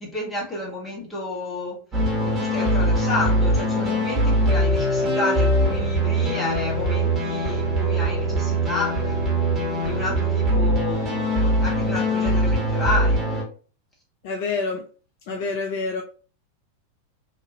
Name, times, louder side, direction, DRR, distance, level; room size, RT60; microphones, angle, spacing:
voice 1, 0.0-1.8 2.2-8.9 9.8-13.2 15.3-15.4, left 2 dB, 15° left, -2 dB, 1.1 m, -30 dB
sound 1, 1.9-13.4, right 1 dB, 15° right, 1.3 m, -22 dB
voice 2, 14.2-14.8 15.2-16.0, left 4 dB, 50° left, 3 dB, 0.4 m, -27 dB
2.9 x 2.4 x 2.5 m, 0.38 s
figure-of-eight pair, 90°, 0 cm